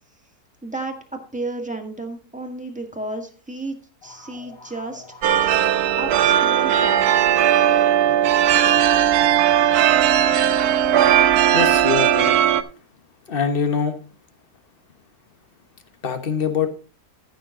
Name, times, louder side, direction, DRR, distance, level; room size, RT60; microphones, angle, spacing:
voice 1, 0.6-5.4 6.0-7.0, right 2 dB, 5° right, 3 dB, 1.6 m, -32 dB
sound 1, 4.0-8.7, left 2 dB, 65° left, 4.6 m, -46 dB
sound 2, 5.2-12.6, right 10 dB, 80° right, 1.2 m, -17 dB
voice 2, 11.3-12.4 13.3-14.0 16.0-16.7, left 6 dB, 40° left, 7 dB, 1.3 m, -23 dB
14.5 x 6.5 x 3.8 m, 0.37 s
omnidirectional pair, 1.6 m